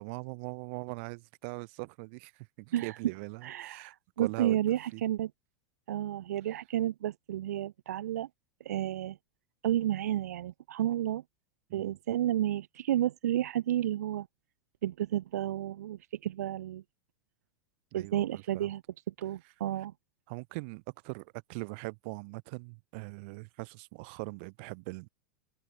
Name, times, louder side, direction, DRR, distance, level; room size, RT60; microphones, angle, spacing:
voice 1, 0.0-4.6 4.9-5.0 11.7-12.0 17.9-18.7 20.3-25.1, right 31 dB, 45° right, 7.8 m, -41 dB
voice 2, 3.4-5.3 5.9-8.3 8.6-9.2 9.6-11.2 11.7-14.3 14.8-16.8 17.9-18.8 19.1-19.9, right 12 dB, 90° right, 2.5 m, -31 dB
open air
supercardioid pair, 165°, 8 cm